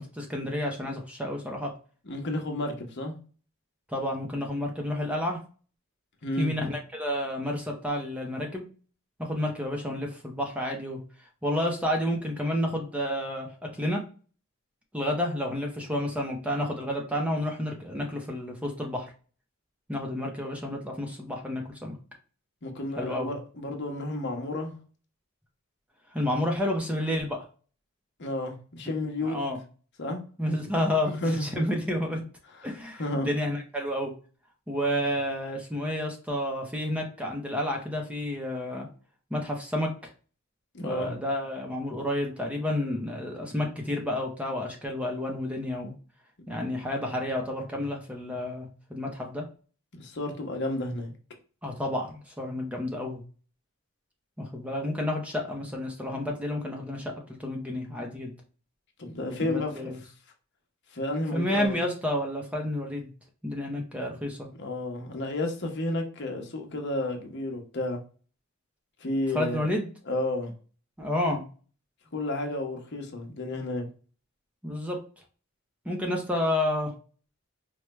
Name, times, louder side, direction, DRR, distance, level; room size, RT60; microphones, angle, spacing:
voice 1, 0.0-1.7 3.9-5.4 6.4-8.6 9.2-11.0 11.4-13.5 13.8-14.0 14.9-19.1 19.9-22.0 23.0-23.3 26.1-27.4 29.2-29.6 30.4-32.2 32.6-34.1 34.7-38.9 39.3-39.9 40.8-45.9 46.5-49.5 51.6-53.2 54.4-57.1 57.4-58.3 59.4-60.0 61.3-63.1 63.4-64.5 69.3-69.9 71.0-71.5 74.6-75.0 75.8-76.9, left 1 dB, 5° right, 0.6 m, -30 dB
voice 2, 2.0-3.2 6.2-6.5 22.6-24.7 28.2-29.4 30.0-30.2 31.2-31.4 33.0-33.3 40.7-41.1 49.9-51.1 59.0-59.9 60.9-61.8 64.6-68.0 69.0-69.7 70.1-70.5 72.1-73.9, left 2 dB, 55° left, 0.9 m, -31 dB
4.7 x 2.2 x 3.0 m
head